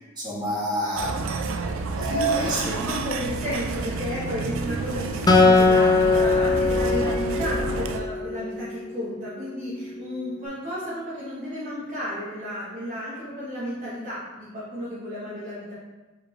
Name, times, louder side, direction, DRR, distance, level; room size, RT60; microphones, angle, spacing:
voice 1, 0.2-1.4 2.0-2.7, right 1 dB, 20° right, -7 dB, 1.4 m, -27 dB
sound 1, 1.0-8.0, right 4 dB, 65° right, 0.3 m, -30 dB
voice 2, 1.6-2.5 2.8-15.7, left 1 dB, 40° right, -9 dB, 1.0 m, -33 dB
Acoustic guitar, 5.3-8.7, left 3 dB, 20° left, 0.4 m, -20 dB
4.9 x 3.1 x 3.1 m, 1.1 s
head